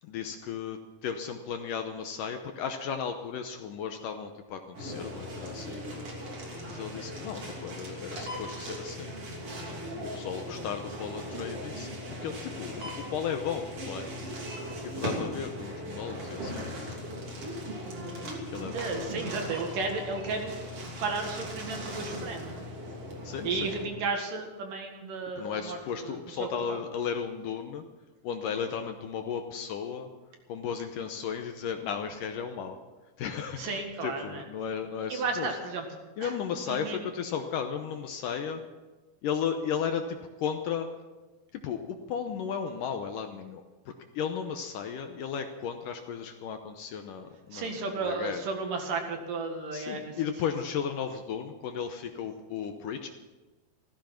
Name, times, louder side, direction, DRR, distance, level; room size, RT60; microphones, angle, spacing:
voice 1, 0.0-5.8 6.7-9.1 10.1-11.9 12.2-14.1 15.0-16.7 18.5-18.9 23.2-23.8 25.4-27.8 28.2-30.1 30.5-32.8 33.2-35.5 36.2-38.6 39.2-40.9 41.5-47.7 48.0-48.4 49.7-53.1, left 7 dB, 70° left, 6 dB, 2.2 m, -35 dB
sound 1, 4.7-23.8, equal, 40° right, 3.6 m, -38 dB
voice 2, 18.7-20.6 21.0-22.7 23.4-26.8 33.6-34.4 35.1-35.9 36.2-36.3 36.7-37.0 47.5-50.1, right 3 dB, 60° right, 3 dB, 3.3 m, -33 dB
15.5 x 14.5 x 5.9 m, 1.2 s
omnidirectional pair, 4.5 m